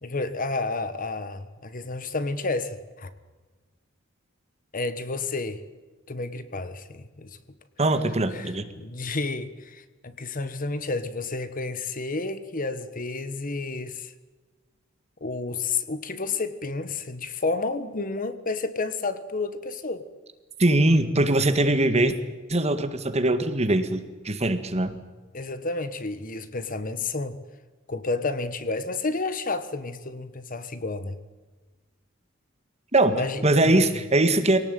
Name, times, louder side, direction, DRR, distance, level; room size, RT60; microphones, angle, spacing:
voice 1, 0.0-3.1 4.7-5.6 6.1-7.4 8.3-14.1 15.2-20.0 25.3-27.4 27.9-31.1 33.1-33.9, left 3 dB, 45° left, 12 dB, 1.4 m, -31 dB
voice 2, 7.8-8.7 20.6-22.1 22.5-25.0 32.9-33.2 33.4-34.6, right 2 dB, 35° right, 9 dB, 1.9 m, -21 dB
24.0 x 18.0 x 9.1 m, 1.3 s
head